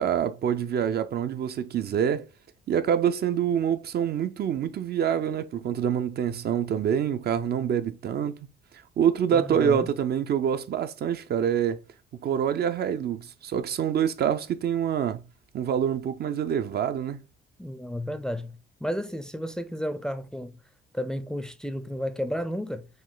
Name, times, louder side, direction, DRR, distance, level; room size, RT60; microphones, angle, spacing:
voice 1, 0.0-2.3 2.7-8.4 9.0-11.8 12.2-15.2 15.5-17.2, right 8 dB, 55° right, 0.5 m, -26 dB
voice 2, 9.3-9.9 17.6-20.6 20.9-22.9, equal, 5° left, 0.4 m, -32 dB
5.2 x 2.2 x 3.8 m
cardioid pair, 90°, 20 cm